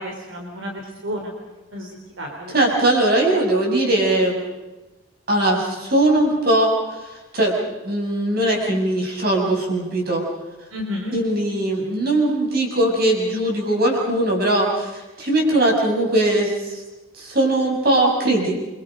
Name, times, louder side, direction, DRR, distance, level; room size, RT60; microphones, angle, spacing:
voice 1, 0.0-1.3 1.7-2.5 10.7-11.2, equal, 75° right, 1 dB, 3.7 m, -31 dB
voice 2, 2.5-4.4 5.3-6.7 7.3-7.6 7.8-10.2 11.1-16.8 17.2-18.5, right 1 dB, 50° right, 0 dB, 7.0 m, -20 dB
29.0 x 25.0 x 5.2 m, 1.1 s
head